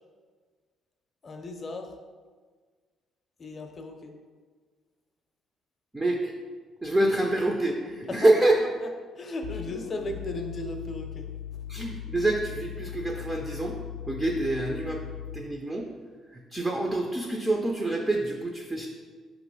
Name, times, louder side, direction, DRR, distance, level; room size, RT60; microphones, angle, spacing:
voice 1, 1.2-1.9 3.4-4.1 8.1-8.7 9.2-11.3, left 2 dB, 30° left, 4 dB, 0.6 m, -35 dB
voice 2, 5.9-6.3 6.8-8.5 11.7-13.8 14.1-15.0 15.3-15.9 16.3-18.9, right 2 dB, 10° right, 1 dB, 0.4 m, -26 dB
sound 1, 9.4-15.6, left 10 dB, 90° left, 0.5 m, -39 dB
5.8 x 3.0 x 5.4 m, 1.5 s
cardioid pair, 155°, 0 cm